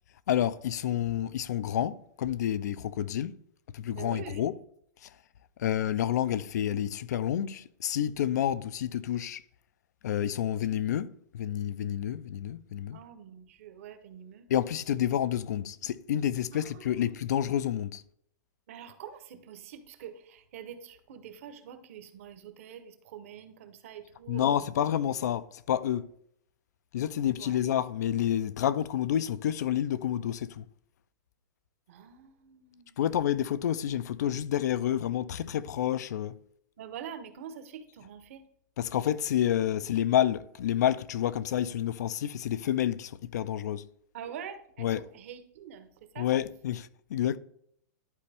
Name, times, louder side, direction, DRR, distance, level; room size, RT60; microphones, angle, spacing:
voice 1, 0.3-3.4 3.7-4.5 5.0-5.2 5.6-9.4 10.0-13.0 14.5-18.0 24.3-26.1 26.9-30.7 33.0-36.4 38.8-43.9 44.8-45.0 46.2-47.4, left 10 dB, 65° left, 0.4 m, -29 dB
voice 2, 3.9-4.5 12.9-14.5 16.5-17.1 18.7-24.7 27.4-27.6 31.9-32.9 36.8-38.4 44.1-46.3, right 8 dB, 45° right, 0.9 m, -45 dB
11.0 x 4.3 x 3.4 m
supercardioid pair, 175°, 10 cm